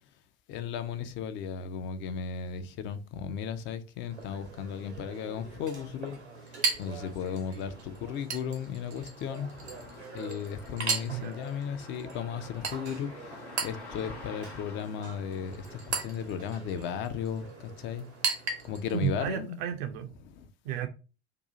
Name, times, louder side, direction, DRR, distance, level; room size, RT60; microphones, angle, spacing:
voice 1, 0.5-6.2 6.8-18.0 18.6-19.6 20.4-20.5, left 7 dB, 35° left, 0.4 m, -35 dB
Chink clink, 4.1-19.1, right 5 dB, 80° right, 0.8 m, -38 dB
sound 1, 5.9-18.2, left 3 dB, 80° left, 0.9 m, -51 dB
voice 2, 18.9-20.1 20.6-20.9, right 9 dB, 50° right, 0.4 m, -32 dB
2.7 x 2.3 x 3.7 m
figure-of-eight pair, 65°, 32 cm